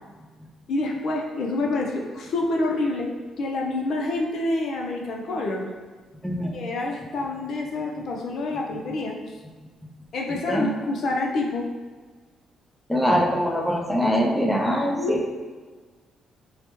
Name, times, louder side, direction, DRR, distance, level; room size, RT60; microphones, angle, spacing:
voice 1, 0.7-3.1 3.4-5.6 6.5-9.1 10.1-11.7 14.9-15.3, left 2 dB, 65° left, 0 dB, 0.6 m, -27 dB
voice 2, 6.2-6.5 10.5-10.7 12.9-15.3, equal, 5° left, 0 dB, 0.6 m, -23 dB
4.7 x 2.1 x 3.0 m, 1.4 s
cardioid pair, 90°, 0 cm